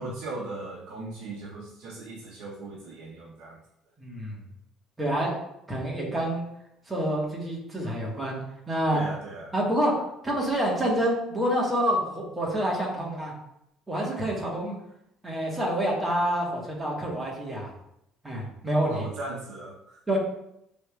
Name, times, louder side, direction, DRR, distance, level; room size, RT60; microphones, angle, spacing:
voice 1, 0.0-3.6 8.9-9.5 18.9-20.0, right 2 dB, 70° right, -3 dB, 0.8 m, -38 dB
voice 2, 4.0-4.3 5.0-5.4 5.7-6.4 6.9-8.4 8.7-9.0 9.5-9.9 10.2-13.3 13.9-14.8 15.2-17.7 18.2-19.1 20.1-20.2, right 1 dB, 10° right, -3 dB, 1.3 m, -27 dB
6.7 x 3.3 x 2.3 m, 0.80 s
cardioid pair, 135°, 0 cm